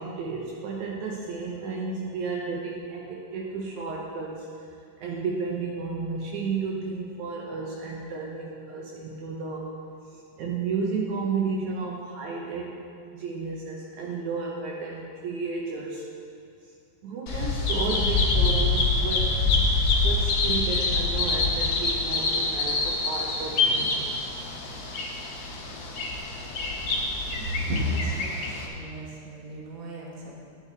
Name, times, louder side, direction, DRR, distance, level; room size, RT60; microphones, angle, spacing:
voice 1, 0.0-4.7 5.0-9.7 10.1-12.8 13.1-16.1 17.0-19.4 19.9-24.1, right 4 dB, 75° right, -2 dB, 2.2 m, -32 dB
Bird vocalization bird call bird song, 17.3-28.7, left 3 dB, 55° left, 1.4 m, -26 dB
voice 2, 27.3-30.4, equal, 45° right, -3 dB, 2.1 m, -33 dB
11.0 x 10.5 x 4.0 m, 2.4 s
omnidirectional pair, 3.6 m